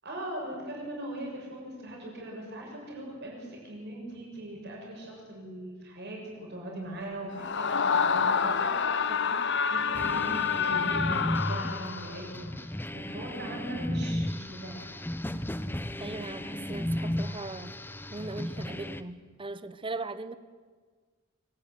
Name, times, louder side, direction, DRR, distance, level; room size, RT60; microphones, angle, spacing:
voice 1, 0.0-14.9, right 1 dB, 55° right, -2 dB, 7.0 m, -40 dB
Screaming, 7.3-12.2, left 6 dB, 60° left, 0.9 m, -28 dB
sound 1, 9.9-19.0, left 1 dB, 10° left, 0.8 m, -34 dB
voice 2, 16.0-17.7 18.1-20.4, right 3 dB, 25° right, 13 dB, 1.0 m, -39 dB
24.5 x 18.0 x 9.4 m, 1.5 s
head